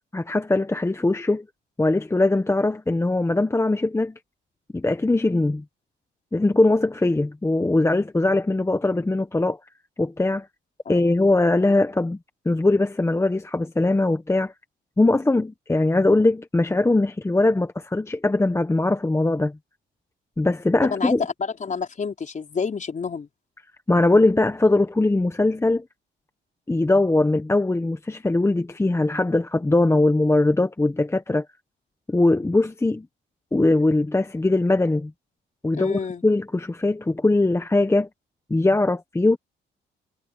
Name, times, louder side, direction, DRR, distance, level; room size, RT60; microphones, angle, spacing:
voice 1, 0.1-1.5 1.8-4.1 4.7-5.6 6.3-9.6 10.0-10.5 10.9-12.2 12.4-14.5 15.0-19.6 20.4-21.2 23.9-25.8 26.7-31.4 32.1-33.1 33.5-35.1 35.6-38.1 38.5-39.4, left 2 dB, 15° left, 1.2 m, -21 dB
voice 2, 20.8-23.3 35.7-36.2, left 5 dB, 40° left, 4.7 m, -29 dB
cardioid pair, 90°, 20 cm